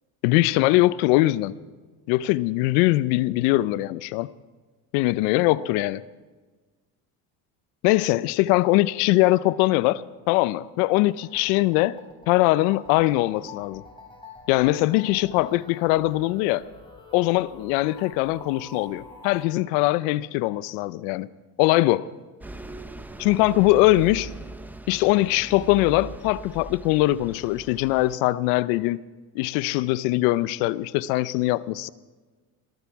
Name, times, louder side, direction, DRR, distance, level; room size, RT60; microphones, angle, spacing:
voice 1, 0.2-1.5 2.1-4.3 4.9-6.0 7.8-12.0 12.3-13.8 14.5-16.6 17.1-21.3 21.6-22.1 23.2-24.3 24.9-29.0 29.3-31.9, left 18 dB, 80° left, 0.7 m, -22 dB
sound 1, 10.9-19.5, left 4 dB, 10° left, 3.8 m, -46 dB
Bus, 22.4-28.2, right 2 dB, 5° right, 0.5 m, -40 dB
21.5 x 13.0 x 4.7 m
supercardioid pair, 105°, 44 cm